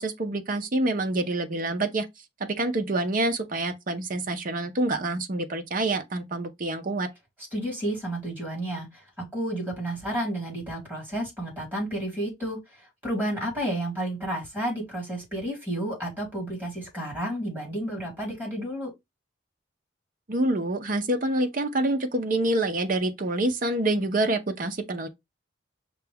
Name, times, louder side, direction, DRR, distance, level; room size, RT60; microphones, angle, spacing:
voice 1, 0.0-2.1 2.4-7.1 20.3-25.1, right 2 dB, 45° right, 0.6 m, -27 dB
voice 2, 7.5-18.9, right 1 dB, 10° right, 2.4 m, -31 dB
5.7 x 2.3 x 3.4 m
head